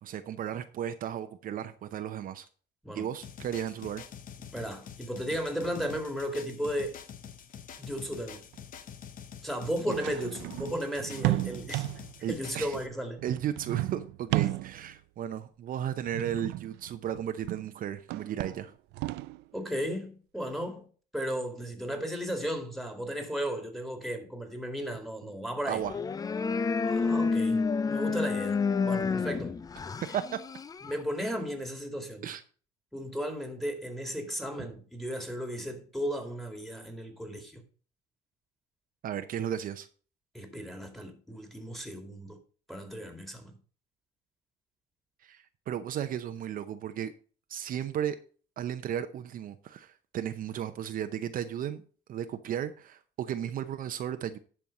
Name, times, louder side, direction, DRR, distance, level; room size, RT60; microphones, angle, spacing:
voice 1, 0.0-2.5 3.0-4.0 9.9-10.0 12.2-12.8 13.2-18.7 25.7-25.9 30.1-30.4 32.2-32.4 39.0-39.9 45.2-47.1 47.5-48.2 48.6-51.8 52.1-54.4, right 10 dB, 55° right, 0.7 m, -34 dB
sound 1, 3.2-12.9, left 8 dB, 55° left, 1.0 m, -47 dB
voice 2, 4.5-7.0 7.8-8.4 9.4-11.9 12.3-13.2 19.5-20.9 21.1-25.8 26.8-29.6 30.8-32.3 32.9-37.6 40.3-42.4 42.7-43.6, equal, ahead, 2.2 m, -35 dB
sound 2, 7.9-8.0 8.5-8.6 9.7-12.2 13.2-15.0 16.0-17.7 18.0-19.4, right 18 dB, 85° right, 0.4 m, -34 dB
sound 3, 25.8-31.0, left 4 dB, 20° left, 0.4 m, -29 dB
11.0 x 4.6 x 5.3 m
cardioid pair, 110°, 17 cm